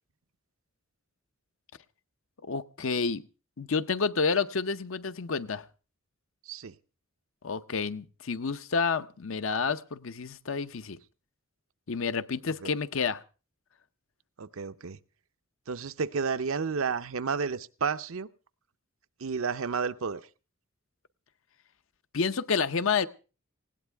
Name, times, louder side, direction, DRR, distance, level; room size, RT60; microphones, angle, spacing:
voice 1, 2.4-3.2 3.6-5.6 7.4-11.0 11.9-13.2 22.1-23.1, left 5 dB, 70° left, 0.7 m, -29 dB
voice 2, 14.4-15.0 15.7-18.3 19.2-20.2, right 5 dB, 75° right, 0.7 m, -31 dB
19.5 x 17.0 x 3.5 m
head